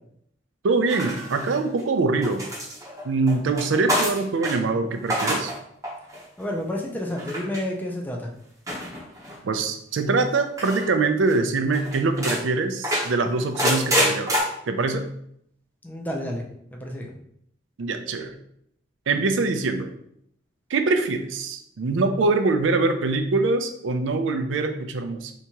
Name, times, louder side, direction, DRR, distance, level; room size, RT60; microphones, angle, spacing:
voice 1, 0.6-2.4 3.0-5.5 9.4-14.4 14.7-15.0 17.8-18.3 19.1-19.9 20.7-25.3, right 3 dB, 75° right, 7 dB, 0.4 m, -23 dB
sound 1, 0.9-1.8 2.2-4.6 4.9-5.6 5.8-6.2 7.2-7.6 8.7-9.4 10.6-10.9 11.3-11.4 11.7-12.4 12.8-14.4, equal, 15° right, 0.8 m, -26 dB
voice 2, 6.4-8.3 15.8-16.5 16.7-17.1, left 1 dB, 10° left, 0 dB, 0.5 m, -30 dB
3.4 x 2.8 x 2.8 m, 0.71 s
head